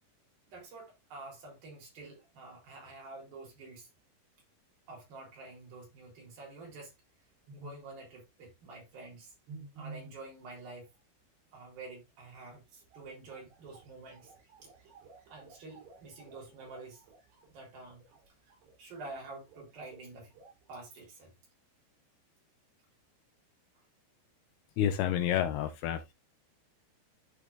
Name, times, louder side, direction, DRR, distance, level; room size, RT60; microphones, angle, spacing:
voice 1, 0.5-3.9 4.9-6.9 7.5-9.3 9.8-10.9 11.5-14.3 14.6-14.7 15.3-17.0 17.5-18.3 18.8-20.3 20.7-21.3, right 3 dB, 60° right, 5.3 m, -48 dB
sound 1, 6.7-6.8 7.5-7.9 9.5-10.3 12.5-12.6 12.8-20.0 20.3-20.8, right 4 dB, 80° right, 5.3 m, -53 dB
voice 2, 24.8-26.1, left 10 dB, 80° left, 2.5 m, -29 dB
12.5 x 4.7 x 2.5 m
omnidirectional pair, 4.9 m